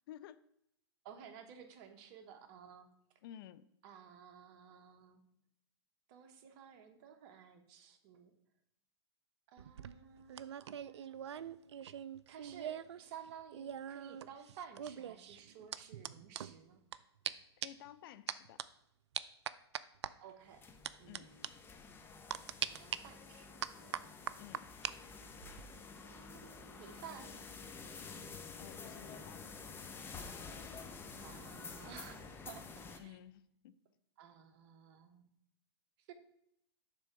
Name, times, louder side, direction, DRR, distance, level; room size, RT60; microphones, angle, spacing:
voice 1, 0.1-0.4 3.2-3.6 17.6-18.6 21.1-21.3 24.4-24.7 28.6-29.5 33.0-33.8, left 12 dB, 55° left, 15 dB, 0.4 m, -53 dB
voice 2, 1.0-2.9 3.8-5.2 6.1-8.3 9.5-11.8 12.3-16.8 20.2-20.7 21.0-21.5 22.7-24.1 26.0-27.4 31.2-33.2 34.2-35.3 36.0-36.1, right 8 dB, 50° right, 7 dB, 1.1 m, -54 dB
sound 1, 9.6-13.0 13.2-17.0 17.2-17.3 17.6-17.9 18.3-18.6 19.1-20.1 20.8-21.2 21.4-21.5 22.3-23.0 23.6-24.9 25.3-25.6, right 9 dB, 80° right, 0.4 m, -42 dB
sound 2, 20.4-33.0, left 4 dB, 15° left, 0.7 m, -50 dB
7.6 x 3.4 x 5.9 m, 0.74 s
hypercardioid pair, 120°, 14 cm